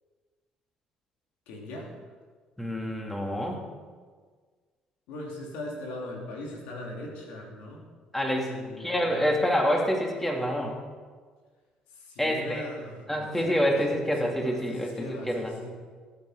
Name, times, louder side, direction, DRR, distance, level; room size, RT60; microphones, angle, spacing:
voice 1, 1.5-1.9 5.1-7.8 8.2-9.3 12.1-15.7, left 1 dB, 85° left, -1 dB, 2.9 m, -40 dB
voice 2, 2.6-3.6 8.1-8.5 8.8-10.7 12.2-12.7 13.1-15.7, equal, 10° left, 0 dB, 2.8 m, -27 dB
18.0 x 8.8 x 5.0 m, 1.5 s
supercardioid pair, 80°, 2 cm